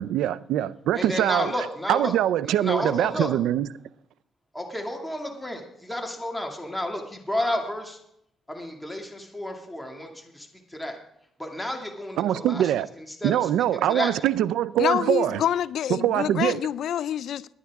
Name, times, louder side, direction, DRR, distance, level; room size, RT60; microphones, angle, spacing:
voice 1, 0.0-1.5 1.9-3.7 12.2-12.9 13.2-15.4 15.9-16.6, right 12 dB, 85° right, 0.4 m, -23 dB
voice 2, 0.9-2.1 2.4-3.3 4.5-8.0 8.5-11.0 11.4-13.3 13.7-14.1 16.4-16.5, left 1 dB, 5° left, 2.2 m, -31 dB
voice 3, 14.8-17.5, left 10 dB, 70° left, 0.4 m, -26 dB
20.5 x 9.3 x 3.6 m
cardioid pair, 90°, 0 cm